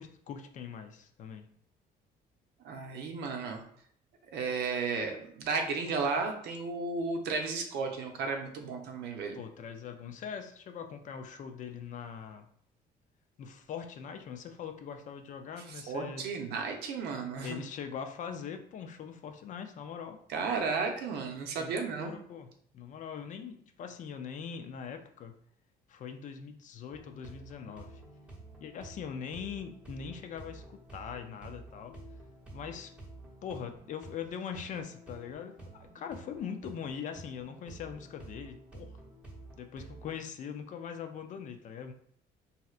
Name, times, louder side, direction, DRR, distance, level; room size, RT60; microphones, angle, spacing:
voice 1, 0.0-1.5 9.3-12.5 13.4-16.2 17.4-20.2 21.6-22.5 22.7-25.3 25.9-28.0 28.6-31.9 32.5-32.9 33.4-39.0 39.6-41.9, left 7 dB, 50° left, 7 dB, 0.4 m, -42 dB
voice 2, 2.6-3.6 4.3-9.4 15.7-17.6 20.3-22.1, right 4 dB, 80° right, 3 dB, 0.6 m, -34 dB
sound 1, 26.9-40.3, right 2 dB, 5° right, 0.9 m, -50 dB
3.1 x 2.7 x 2.4 m, 0.65 s
cardioid pair, 110°, 17 cm